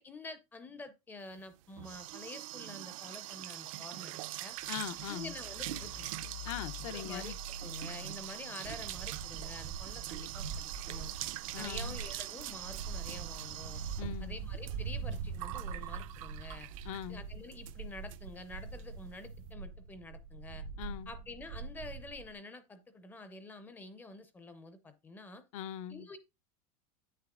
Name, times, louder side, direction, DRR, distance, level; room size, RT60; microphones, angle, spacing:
voice 1, 0.0-4.1 4.4-4.6 5.1-6.1 6.9-7.3 7.6-11.1 11.6-13.8 14.2-16.7 17.1-20.6 21.1-25.4 25.9-26.2, left 2 dB, 10° left, 0.5 m, -48 dB
sound 1, 1.4-17.1 17.5-17.8 18.1-18.2 18.5-18.8, right 17 dB, 60° right, 0.5 m, -43 dB
sound 2, 4.6-8.8, left 4 dB, 85° left, 2.3 m, -48 dB
voice 2, 4.7-5.3 6.4-7.4 11.5-12.0 14.0-14.4 16.8-17.2 20.8-21.1 25.5-26.1, left 11 dB, 60° left, 0.7 m, -41 dB
sound 3, 8.6-22.3, right 5 dB, 85° right, 1.5 m, -43 dB
8.9 x 6.6 x 2.3 m
supercardioid pair, 180°, 19 cm